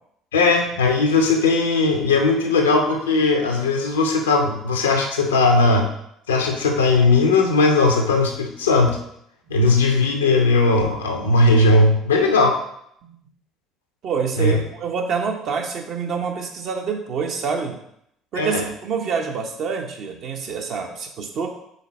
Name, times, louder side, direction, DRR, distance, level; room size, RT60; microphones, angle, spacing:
voice 1, 0.3-5.9 6.3-9.0 9.5-12.6 14.4-14.6 18.3-18.6, left 3 dB, 75° left, 3 dB, 0.8 m, -18 dB
voice 2, 14.0-17.8 18.3-21.5, right 5 dB, 50° right, 2 dB, 1.0 m, -26 dB
5.6 x 4.1 x 4.2 m, 0.74 s
figure-of-eight pair, 55°, 0 cm